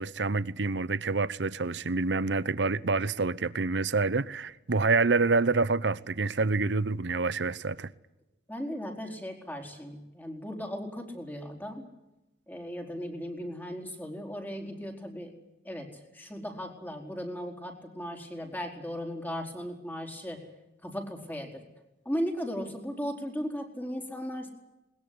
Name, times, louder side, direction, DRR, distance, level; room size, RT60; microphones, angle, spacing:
voice 1, 0.0-7.9, right 3 dB, 75° right, 0.9 m, -27 dB
voice 2, 8.5-11.8 12.5-15.3 15.6-20.4 20.8-21.6 22.0-24.5, equal, 10° left, 4.6 m, -36 dB
21.0 x 21.0 x 9.8 m
head